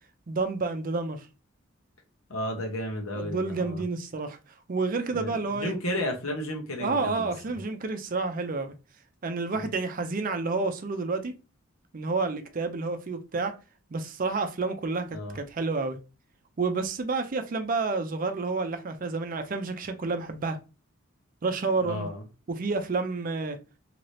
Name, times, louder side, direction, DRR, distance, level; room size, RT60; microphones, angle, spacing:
voice 1, 0.3-1.3 3.1-4.4 4.7-5.7 6.8-8.7 9.2-11.3 11.9-13.5 13.9-16.0 16.6-20.6 21.4-22.1 22.5-23.6, right 3 dB, 40° right, 0.4 m, -29 dB
voice 2, 2.3-3.8 5.1-7.6 9.5-9.7 15.1-15.4 21.8-22.2, left 1 dB, 85° left, 1.0 m, -33 dB
2.8 x 2.7 x 3.1 m
head